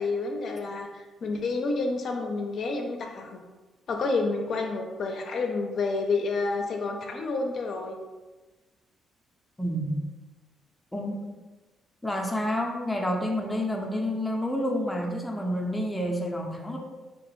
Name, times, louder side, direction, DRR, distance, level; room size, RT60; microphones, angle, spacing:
voice 1, 0.0-3.4 3.9-8.0, left 3 dB, 60° left, 2 dB, 0.5 m, -29 dB
voice 2, 9.6-10.0 10.9-11.2 12.0-16.8, equal, 10° left, 0 dB, 0.5 m, -29 dB
3.2 x 2.8 x 3.0 m, 1.2 s
cardioid pair, 90°, 0 cm